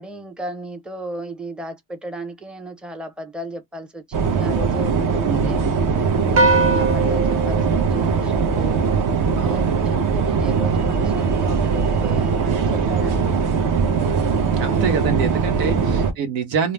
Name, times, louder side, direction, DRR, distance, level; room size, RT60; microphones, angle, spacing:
voice 1, 0.0-5.6 6.1-9.0 9.4-13.4 14.6-15.1 15.5-16.1, right 2 dB, ahead, 0.6 m, -34 dB
sound 1, 4.1-16.1, right 5 dB, 45° right, 0.9 m, -20 dB
voice 2, 5.3-6.1 9.4-10.0 14.0-16.7, right 5 dB, 75° right, 1.1 m, -27 dB
sound 2, 6.4-8.9, right 3 dB, 30° right, 1.3 m, -22 dB
2.3 x 2.2 x 3.2 m
supercardioid pair, 75°, 44 cm